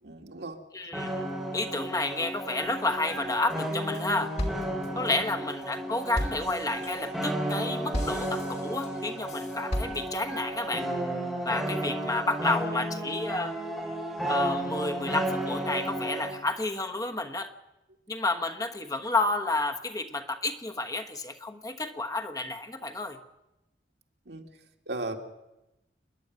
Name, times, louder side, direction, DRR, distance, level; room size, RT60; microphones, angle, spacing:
voice 1, 0.0-0.6 4.9-5.2 24.3-24.5 24.9-25.2, right 2 dB, 65° right, 3 dB, 2.3 m, -37 dB
voice 2, 0.7-1.3 1.5-4.3 4.9-10.9 11.4-13.6 14.2-17.5 18.1-23.2, left 2 dB, 20° left, 5 dB, 1.2 m, -31 dB
sound 1, 0.9-16.4, right 1 dB, ahead, 5.6 m, -33 dB
sound 2, 3.5-4.0 4.4-10.4, equal, 40° left, 2.7 m, -36 dB
28.5 x 10.5 x 9.3 m, 0.94 s
head